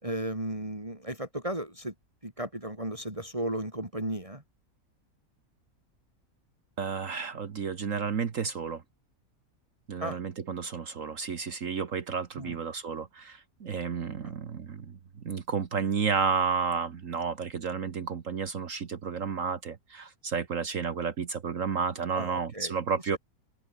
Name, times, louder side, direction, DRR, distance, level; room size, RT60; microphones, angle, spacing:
voice 1, 0.0-1.9 2.2-4.4 10.0-10.2 12.4-12.6 22.1-22.7 23.1-23.2, right 1 dB, 20° right, 4.7 m, -35 dB
voice 2, 6.8-8.8 9.9-14.9 15.2-23.2, right 5 dB, 65° right, 1.7 m, -31 dB
open air
omnidirectional pair, 1.5 m